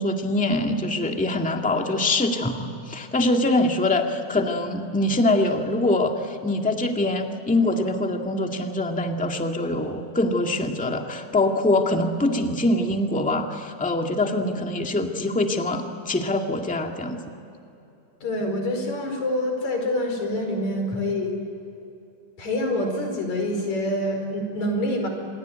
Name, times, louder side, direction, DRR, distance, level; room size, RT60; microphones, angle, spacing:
voice 1, 0.0-17.2, left 2 dB, 5° left, 3 dB, 1.2 m, -24 dB
voice 2, 18.2-21.3 22.4-25.1, left 1 dB, 70° left, 3 dB, 6.2 m, -26 dB
27.5 x 22.0 x 9.3 m, 2.8 s
omnidirectional pair, 3.4 m